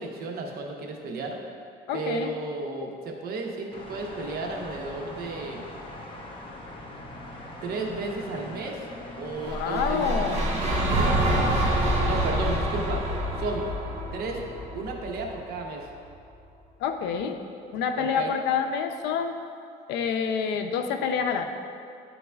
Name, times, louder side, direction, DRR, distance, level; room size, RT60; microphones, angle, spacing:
voice 1, 0.0-1.4 1.9-5.6 7.6-8.8 9.2-10.6 11.2-11.7 12.0-13.0 13.4-13.7 14.1-14.4 14.7-15.9 18.0-18.3, right 3 dB, 65° right, 1 dB, 0.9 m, -33 dB
voice 2, 1.9-2.3 9.4-10.4 16.8-17.4 17.7-19.4 19.9-21.4, left 6 dB, 85° left, 6 dB, 0.5 m, -27 dB
sound 1, 3.7-11.3, left 1 dB, 30° left, 0.8 m, -42 dB
sound 2, 9.4-15.6, right 1 dB, 40° right, 1.5 m, -26 dB
10.5 x 3.9 x 2.3 m, 2.4 s
cardioid pair, 110°, 17 cm